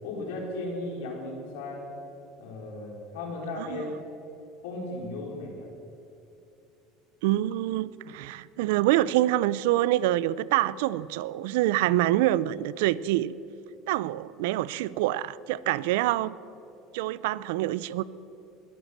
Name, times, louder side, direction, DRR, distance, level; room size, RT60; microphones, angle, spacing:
voice 1, 0.0-1.9 2.4-4.0 4.6-5.7, left 2 dB, 85° left, -1 dB, 4.2 m, -36 dB
voice 2, 7.2-13.3 13.9-16.3 16.9-18.0, right 15 dB, 80° right, 19 dB, 0.4 m, -26 dB
20.5 x 8.3 x 7.3 m, 2.9 s
supercardioid pair, 120°, 0 cm